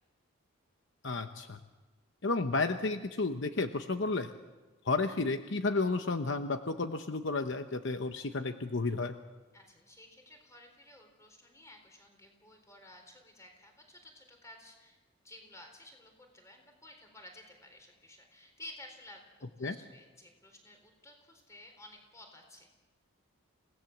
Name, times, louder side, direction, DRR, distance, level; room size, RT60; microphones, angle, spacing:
voice 1, 1.0-1.6 2.2-4.3 4.8-9.1 19.6-19.7, left 3 dB, 60° left, 8 dB, 0.9 m, -32 dB
voice 2, 9.5-15.0 15.2-22.7, left 1 dB, 15° left, 4 dB, 4.1 m, -54 dB
28.0 x 18.0 x 7.3 m, 1.2 s
head